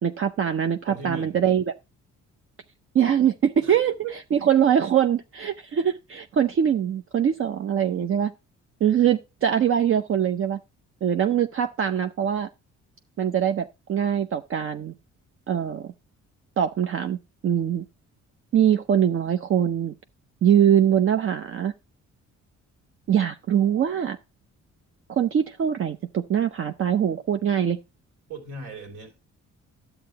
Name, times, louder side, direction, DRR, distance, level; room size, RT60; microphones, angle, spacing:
voice 1, 0.0-1.7 2.9-3.9 4.3-8.3 8.8-10.6 11.0-12.5 13.2-14.9 15.5-15.9 16.6-17.2 17.4-17.8 18.5-19.9 20.4-21.7 23.1-24.2 25.1-27.8, right 9 dB, 45° right, 0.6 m, -22 dB
voice 2, 0.9-1.4 3.6-4.1 28.3-29.2, right 4 dB, 70° right, 2.9 m, -37 dB
11.0 x 7.8 x 2.8 m
cardioid pair, 90°, 30 cm